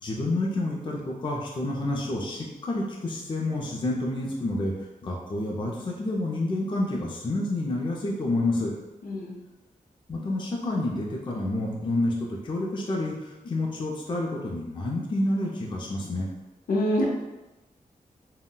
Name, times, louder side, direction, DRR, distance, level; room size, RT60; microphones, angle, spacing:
voice 1, 0.0-4.7 5.0-8.7 10.1-16.3, left 2 dB, 35° left, -2 dB, 0.4 m, -29 dB
voice 2, 9.0-9.4 16.7-17.1, left 1 dB, 80° left, -2 dB, 0.6 m, -25 dB
3.6 x 2.1 x 2.2 m, 1.1 s
wide cardioid pair, 160°, 15 cm